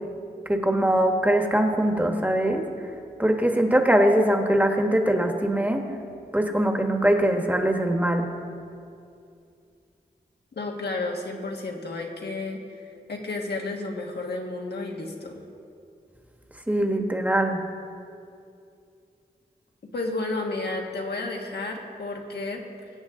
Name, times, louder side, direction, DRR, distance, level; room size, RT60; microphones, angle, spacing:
voice 1, 0.5-2.6 3.2-5.8 6.3-8.2 16.7-17.6, right 1 dB, 10° right, 4 dB, 1.3 m, -22 dB
voice 2, 10.5-12.6 13.1-15.4 19.9-22.9, left 2 dB, 85° left, 1 dB, 1.6 m, -32 dB
22.0 x 8.5 x 3.7 m, 2.5 s
wide cardioid pair, 80°, 17 cm